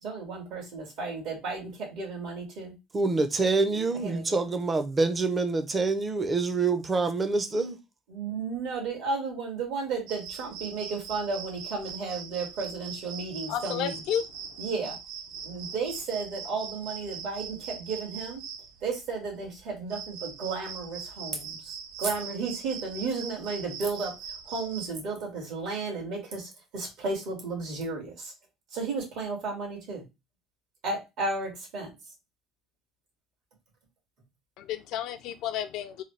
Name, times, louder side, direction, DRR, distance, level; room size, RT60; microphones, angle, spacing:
voice 1, 0.0-2.7 3.9-4.6 8.1-14.0 14.6-15.0 15.4-18.4 18.8-24.1 24.5-28.3 28.7-30.0 30.8-31.9, right 4 dB, 70° right, 2.1 m, -33 dB
voice 2, 2.9-7.8, right 3 dB, 25° right, 0.6 m, -26 dB
sound 1, 10.1-24.9, right 7 dB, 85° right, 0.6 m, -41 dB
voice 3, 13.5-14.2 34.6-36.0, left 10 dB, 70° left, 0.4 m, -31 dB
3.9 x 2.3 x 3.2 m
cardioid pair, 115°, 0 cm